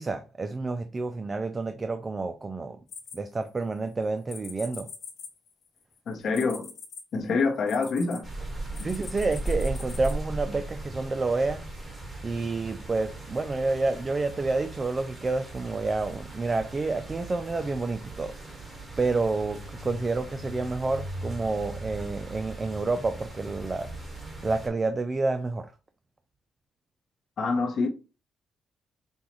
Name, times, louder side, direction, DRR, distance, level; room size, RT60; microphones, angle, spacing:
voice 1, 0.0-2.8 3.1-4.9 8.8-11.6 12.2-18.3 19.0-23.9 24.4-25.7, right 3 dB, 25° right, 0.4 m, -29 dB
sound 1, 2.9-3.7 4.3-8.2 8.7-10.1, left 6 dB, 80° left, 1.4 m, -43 dB
voice 2, 6.1-6.7 7.1-8.3 8.8-8.9 27.4-27.9, left 4 dB, 60° left, 0.9 m, -26 dB
sound 2, 8.2-24.7, right 2 dB, 10° right, 1.6 m, -38 dB
5.3 x 2.3 x 3.0 m
cardioid pair, 95°, 0 cm